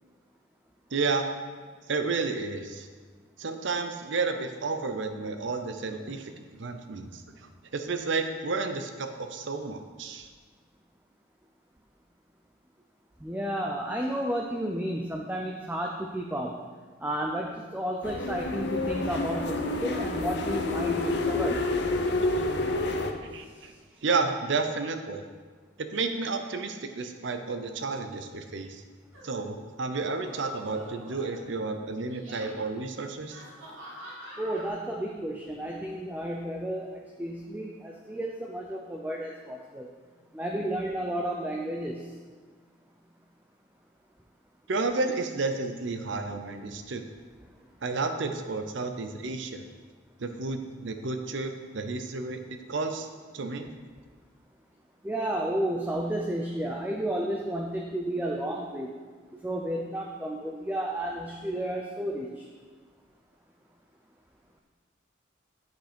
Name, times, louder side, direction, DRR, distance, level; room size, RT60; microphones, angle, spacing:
voice 1, 0.9-1.4 1.9-2.9 3.4-10.3 22.4-22.5 23.3-23.7 24.0-25.2 25.8-28.8 29.2-33.4 44.7-47.0 47.8-49.6 50.2-53.1 53.3-53.7, right 3 dB, 65° right, 7 dB, 0.6 m, -31 dB
voice 2, 13.2-16.6 17.0-21.6 34.4-39.9 40.3-42.1 55.0-58.9 59.4-62.4, right 1 dB, 10° right, 0 dB, 0.5 m, -32 dB
sound 1, 18.0-23.1, left 2 dB, 55° left, 0.7 m, -28 dB
sound 2, 29.1-29.4 30.1-31.6 32.0-32.5 33.3-34.7, equal, 90° right, 2.4 m, -45 dB
8.8 x 5.4 x 5.1 m, 1.5 s
head